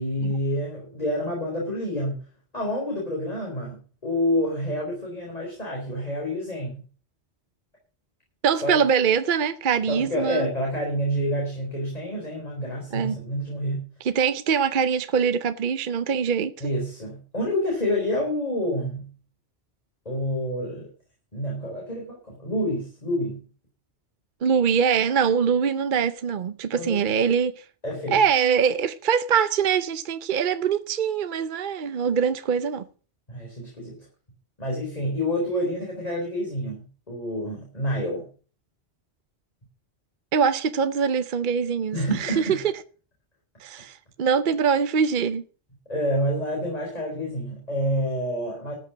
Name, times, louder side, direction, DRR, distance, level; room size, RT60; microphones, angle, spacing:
voice 1, 0.0-2.2 2.5-6.8 8.6-8.8 9.9-13.9 16.6-19.1 20.0-20.9 21.3-23.4 26.7-27.0 27.8-28.2 33.3-34.0 34.6-38.3 41.9-42.6 45.9-48.8, equal, 35° left, 4.5 m, -28 dB
voice 2, 8.4-10.5 12.9-13.2 14.0-16.5 24.4-27.6 28.1-32.8 40.3-42.6 43.6-45.4, right 6 dB, 55° right, 0.8 m, -23 dB
13.5 x 6.8 x 7.2 m
omnidirectional pair, 1.1 m